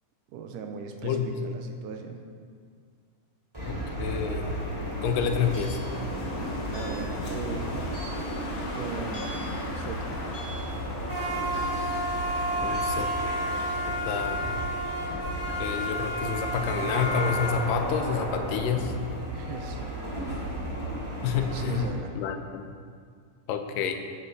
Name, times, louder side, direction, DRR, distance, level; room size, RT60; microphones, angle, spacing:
voice 1, 0.3-2.2 6.7-7.9 8.7-9.4 9.8-10.1 19.3-19.9 20.2-20.4 21.5-22.1, right 5 dB, 80° right, 5 dB, 2.4 m, -38 dB
voice 2, 1.0-1.4 3.7-4.7 5.0-5.8 12.6-13.1 13.9-14.6 15.6-18.9 21.2-21.9 22.2-22.7 23.5-24.0, left 7 dB, 90° left, 6 dB, 2.5 m, -29 dB
sound 1, 3.5-21.8, equal, 10° right, 2.6 m, -32 dB
Wind, 4.1-14.0, left 2 dB, 55° left, 1.5 m, -41 dB
sound 2, 5.5-5.9 6.7-7.2 7.9-8.4 9.1-9.6 10.3-10.8 11.5-11.9 12.7-12.9, right 1 dB, 20° left, 2.9 m, -45 dB
9.5 x 8.6 x 6.7 m, 2.1 s
omnidirectional pair, 3.8 m